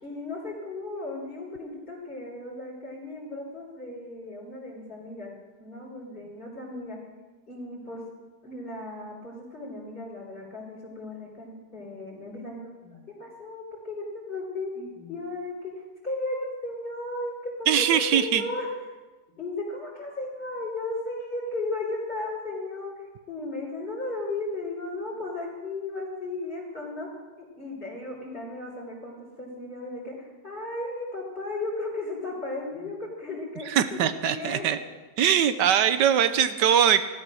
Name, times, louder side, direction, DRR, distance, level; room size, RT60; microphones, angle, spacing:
voice 1, 0.0-5.3 5.6-7.0 7.5-8.0 8.4-15.7 16.0-18.7 19.4-27.1 27.4-34.8, left 2 dB, 30° left, -5 dB, 4.1 m, -35 dB
voice 2, 17.7-18.4 33.7-34.8 35.2-37.0, right 9 dB, 85° right, 11 dB, 1.5 m, -21 dB
15.5 x 13.0 x 6.3 m, 1.2 s
omnidirectional pair, 1.8 m